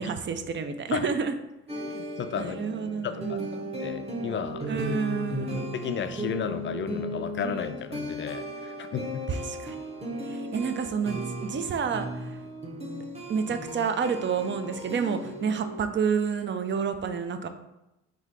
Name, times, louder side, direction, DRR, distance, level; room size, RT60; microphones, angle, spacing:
voice 1, 0.0-1.3 2.4-3.7 4.7-5.7 9.3-9.8 10.2-12.4 13.3-17.5, right 6 dB, 40° right, 8 dB, 0.5 m, -29 dB
sound 1, 1.7-15.8, equal, 20° right, 1.0 m, -36 dB
voice 2, 1.8-2.6 3.0-3.4 3.8-4.8 5.5-9.3, left 7 dB, 40° left, 10 dB, 0.4 m, -34 dB
3.9 x 2.7 x 4.7 m, 0.91 s
cardioid pair, 90°, 30 cm